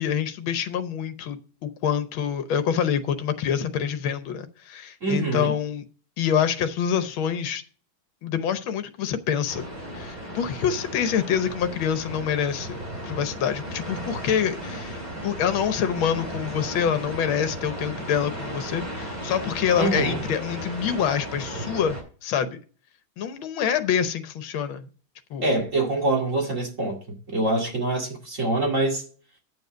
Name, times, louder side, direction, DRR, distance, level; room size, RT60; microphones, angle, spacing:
voice 1, 0.0-5.8 6.2-7.6 8.2-9.7 9.9-22.6 23.2-24.9 25.3-25.5, left 8 dB, 75° left, 1.7 m, -26 dB
voice 2, 5.0-5.5 19.8-20.2 25.4-27.0 27.3-29.0, right 2 dB, 35° right, 2.5 m, -24 dB
sound 1, 9.5-22.0, equal, 20° right, 4.2 m, -35 dB
9.6 x 7.1 x 5.2 m
omnidirectional pair, 2.3 m